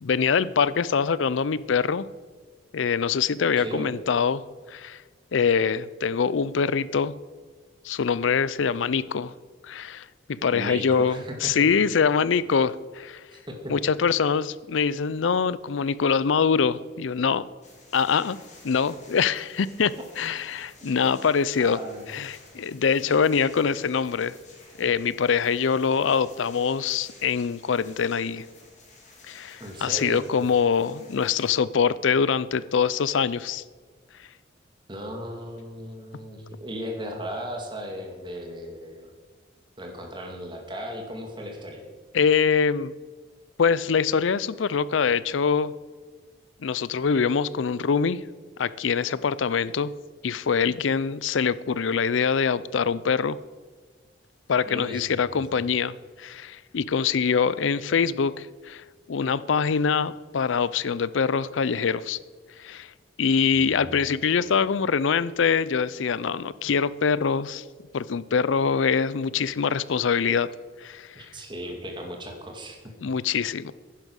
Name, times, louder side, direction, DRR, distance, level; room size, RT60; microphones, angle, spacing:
voice 1, 0.0-2.1 2.7-4.4 4.7-5.0 5.3-7.1 7.8-9.3 9.6-13.2 13.7-17.4 17.9-18.4 18.6-19.9 20.2-21.8 22.1-24.3 24.8-28.5 29.3-33.6 42.1-42.9 43.6-45.7 46.6-48.2 48.6-49.9 50.2-53.4 54.5-62.2 62.6-62.9 63.2-67.6 67.9-70.5 70.8-71.3 73.0-73.7, left 6 dB, 80° left, 18 dB, 0.5 m, -24 dB
voice 2, 3.6-3.9 10.5-11.5 13.3-13.7 20.8-20.9 21.6-22.1 29.6-30.3 34.9-39.1 39.8-41.8 54.7-55.1 63.5-63.9 71.2-72.9, equal, 25° right, 2 dB, 2.2 m, -36 dB
sound 1, 17.6-31.6, left 3 dB, 40° left, 3.1 m, -52 dB
10.5 x 10.5 x 6.4 m, 1.4 s
head